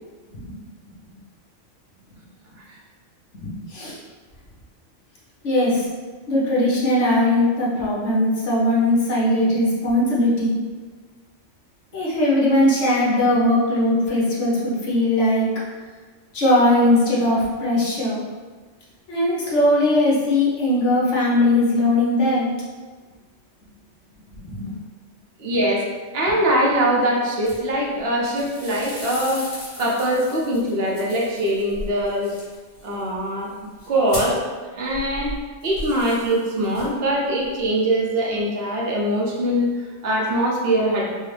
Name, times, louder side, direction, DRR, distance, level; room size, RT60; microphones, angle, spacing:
voice 1, 3.3-4.0 5.4-5.9 6.3-10.6 11.9-15.5 16.3-18.2 19.1-22.5 24.3-24.8, left 1 dB, 75° left, -6 dB, 1.3 m, -19 dB
voice 2, 25.4-25.8 26.1-32.3 32.8-33.5 33.9-34.4 34.7-35.3 35.6-41.2, right 1 dB, 60° right, -3 dB, 0.8 m, -22 dB
sound 1, 27.4-28.0 28.2-34.5 34.9-37.1 37.4-37.7, left 1 dB, 35° left, 1.2 m, -37 dB
4.5 x 2.1 x 3.2 m, 1.4 s
omnidirectional pair, 1.2 m